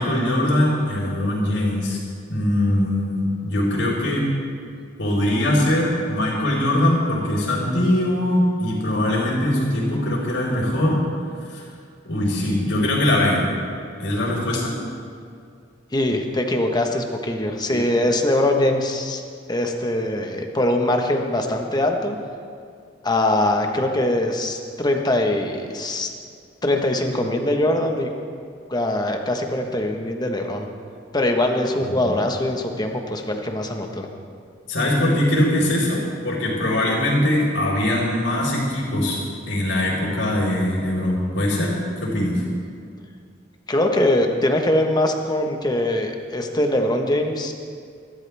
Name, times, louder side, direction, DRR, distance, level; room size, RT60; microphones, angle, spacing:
voice 1, 0.0-2.0 2.3-4.3 5.0-11.1 11.5-11.6 12.0-13.4 14.0-14.7 17.6-17.8 31.8-32.1 34.7-39.2 39.5-42.4, left 1 dB, 85° left, -9 dB, 4.1 m, -21 dB
voice 2, 15.9-19.2 19.5-22.2 23.0-26.1 26.6-28.1 28.7-30.7 31.1-34.1 43.7-47.5, left 1 dB, 20° left, 3 dB, 1.3 m, -22 dB
23.5 x 13.0 x 3.5 m, 2.3 s
head